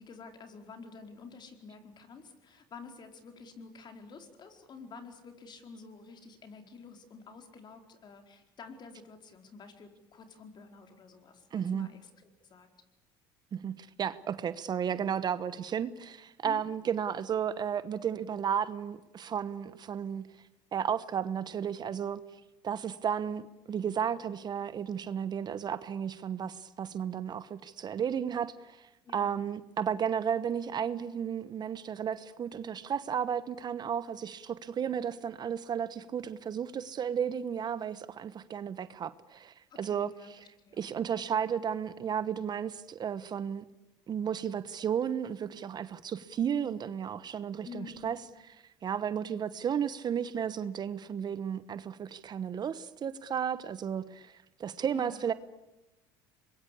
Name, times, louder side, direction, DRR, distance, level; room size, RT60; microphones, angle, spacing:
voice 1, 0.0-12.7 16.4-16.6 29.0-29.4 39.7-40.8 47.6-48.3 54.9-55.3, left 4 dB, 40° left, 4.5 m, -50 dB
voice 2, 11.5-11.9 13.5-20.3 20.7-22.2 22.6-40.4 40.8-43.7 44.1-48.2 48.8-55.3, right 8 dB, 40° right, 1.1 m, -33 dB
25.5 x 22.0 x 8.4 m
supercardioid pair, 90°, 11 cm